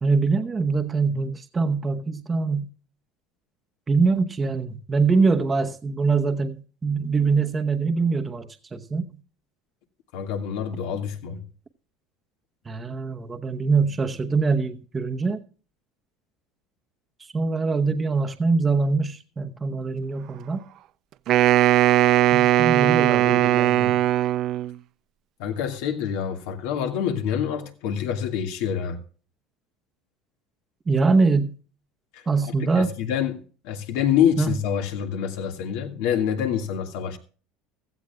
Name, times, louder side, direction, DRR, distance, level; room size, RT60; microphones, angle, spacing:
voice 1, 0.0-2.7 3.9-9.1 12.7-15.4 17.3-20.6 22.3-24.0 30.9-31.5 32.3-32.9 34.4-34.6, right 4 dB, 20° right, 0.9 m, -23 dB
voice 2, 10.1-11.5 25.4-29.0 32.1-37.2, left 8 dB, 75° left, 1.8 m, -26 dB
Wind instrument woodwind instrument, 21.3-24.8, right 14 dB, 50° right, 0.4 m, -19 dB
16.0 x 14.0 x 2.3 m
supercardioid pair, 130°, 0 cm